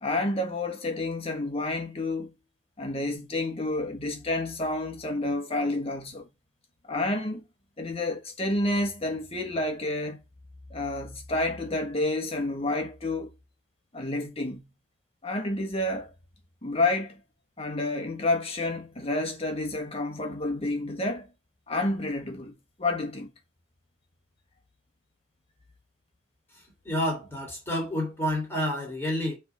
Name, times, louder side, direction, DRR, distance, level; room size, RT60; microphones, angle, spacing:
voice 1, 0.0-2.3 2.8-6.3 6.9-7.4 7.8-10.2 10.7-13.3 13.9-14.7 15.2-16.1 16.6-17.2 17.6-21.3 21.7-23.3, left 2 dB, 30° left, 1.4 m, -29 dB
voice 2, 26.8-29.4, left 1 dB, 15° left, 3.1 m, -29 dB
7.8 x 3.6 x 5.7 m
head